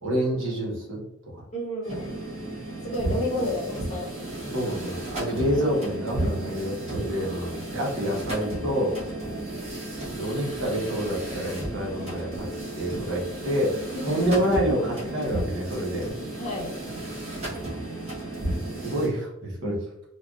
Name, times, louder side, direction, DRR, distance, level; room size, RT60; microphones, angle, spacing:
voice 1, 0.0-1.0 1.3-1.4 4.5-9.0 10.1-12.5 12.8-16.1 17.4-17.5 18.8-19.8, equal, 65° right, -3 dB, 1.0 m, -27 dB
voice 2, 1.5-2.1 2.8-4.1 9.2-9.7 13.9-14.4 16.3-16.8, left 1 dB, 30° left, -2 dB, 0.8 m, -31 dB
sound 1, 1.8-19.1, right 1 dB, 30° right, 1.0 m, -33 dB
3.4 x 2.3 x 2.4 m, 0.82 s
head